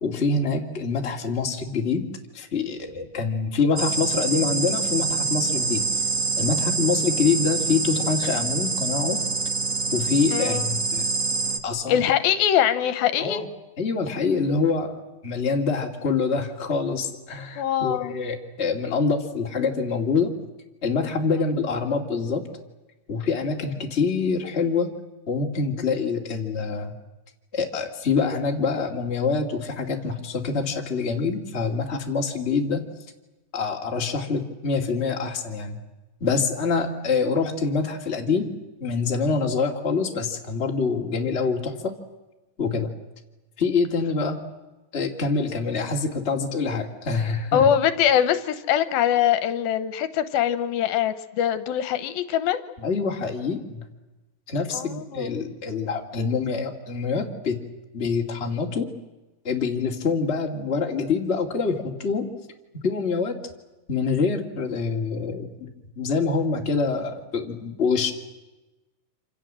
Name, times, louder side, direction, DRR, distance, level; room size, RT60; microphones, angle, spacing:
voice 1, 0.0-2.1 2.3-5.8 6.4-9.2 9.9-11.1 11.6-12.0 13.2-13.5 13.8-20.3 20.8-22.4 23.1-24.9 25.3-26.9 27.5-32.8 33.5-35.8 36.2-38.5 38.8-41.9 42.6-42.9 43.6-44.4 44.9-47.7 52.8-53.8 54.5-57.6 57.9-58.9 59.4-62.3 62.8-63.4 63.9-65.7 66.0-68.1, left 4 dB, 20° left, 1 dB, 2.2 m, -25 dB
sound 1, 3.8-11.6, right 4 dB, 70° right, 0.7 m, -26 dB
voice 2, 10.3-10.6 11.9-13.4 17.6-18.2 47.5-52.6 54.7-55.3, left 10 dB, 80° left, 11 dB, 2.8 m, -23 dB
27.0 x 27.0 x 7.6 m, 1.1 s
omnidirectional pair, 4.3 m